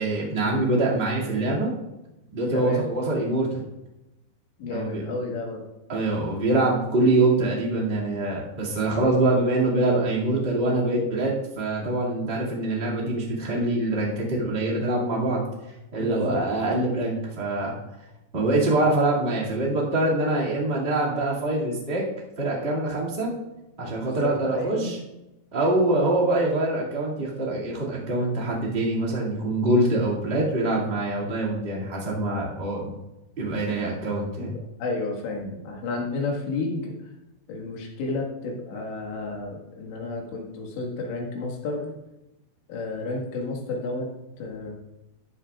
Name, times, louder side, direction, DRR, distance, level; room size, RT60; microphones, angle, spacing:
voice 1, 0.0-1.7 2.3-3.5 4.6-5.0 5.9-15.4 15.9-17.7 18.3-22.0 22.4-23.3 23.8-25.0 25.5-32.9 33.4-34.5, right 2 dB, 25° right, -5 dB, 1.2 m, -24 dB
voice 2, 2.5-2.9 4.6-5.6 16.0-16.4 24.0-24.9 34.4-34.5 34.8-36.9 37.5-41.9 42.7-44.1 44.4-44.7, left 3 dB, 80° left, -1 dB, 4.1 m, -31 dB
14.0 x 10.0 x 2.4 m, 0.95 s
omnidirectional pair, 5.1 m